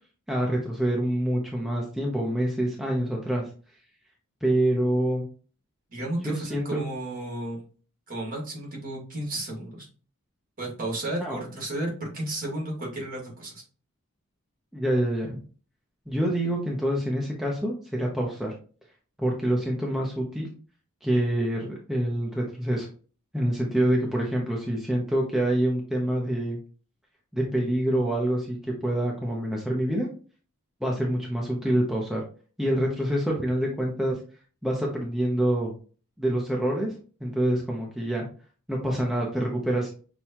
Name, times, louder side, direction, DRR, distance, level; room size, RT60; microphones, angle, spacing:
voice 1, 0.3-3.5 4.4-5.2 6.2-6.8 11.2-11.4 14.7-15.4 16.1-18.5 19.2-20.5 21.0-22.9 23.3-26.6 27.3-30.1 30.8-32.2 32.6-34.2 34.6-35.7 36.2-36.9 37.2-38.3 38.7-39.9, right 1 dB, ahead, -2 dB, 0.7 m, -26 dB
voice 2, 5.9-7.6 8.1-9.9 10.6-13.6, right 1 dB, 40° right, -1 dB, 1.7 m, -33 dB
6.0 x 2.3 x 2.8 m, 0.38 s
head